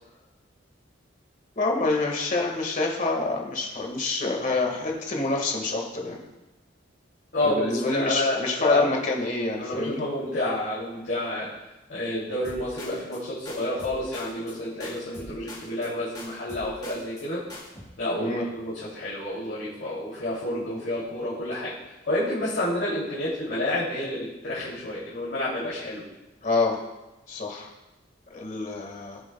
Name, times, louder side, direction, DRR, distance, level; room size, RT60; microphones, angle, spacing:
voice 1, 1.6-6.2 7.4-10.1 18.2-18.5 26.4-26.8 27.3-27.7 28.3-29.2, left 3 dB, 40° left, 1 dB, 1.8 m, -27 dB
voice 2, 7.3-8.9 9.6-11.5 11.9-17.4 18.0-21.7 22.0-26.0, left 1 dB, 60° left, -8 dB, 2.8 m, -29 dB
sound 1, 12.4-13.2 13.5-14.6 14.8-15.9 16.1-17.2 17.5-17.9, left 1 dB, 25° left, 2.8 m, -43 dB
18.0 x 7.7 x 2.3 m, 1.0 s
head